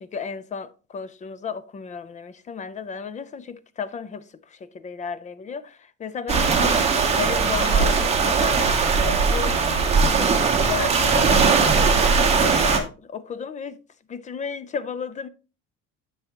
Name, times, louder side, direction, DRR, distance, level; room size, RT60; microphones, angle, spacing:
voice 1, 0.0-4.2 4.6-6.8 7.1-13.8 14.1-15.3, left 6 dB, 20° left, 0.5 m, -33 dB
sound 1, 6.3-12.8, right 5 dB, 20° right, 1.5 m, -19 dB
9.8 x 6.2 x 2.9 m
cardioid pair, 155°, 34 cm